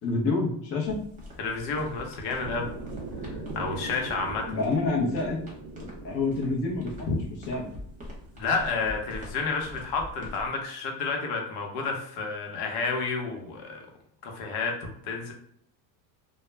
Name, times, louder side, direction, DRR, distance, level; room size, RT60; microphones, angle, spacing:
voice 1, 0.0-1.0 4.5-5.4 5.8-7.1 7.5-7.7, left 3 dB, 30° left, -1 dB, 0.5 m, -28 dB
sound 1, 0.9-10.5, left 1 dB, 15° right, 0.8 m, -45 dB
voice 2, 1.4-2.7 3.2-4.6 7.1-7.2 8.4-13.8 14.2-15.3, left 4 dB, 65° left, 2 dB, 0.8 m, -30 dB
sound 2, 2.4-8.5, right 3 dB, 40° right, 0.5 m, -41 dB
2.2 x 2.0 x 3.2 m, 0.70 s
cardioid pair, 130°, 47 cm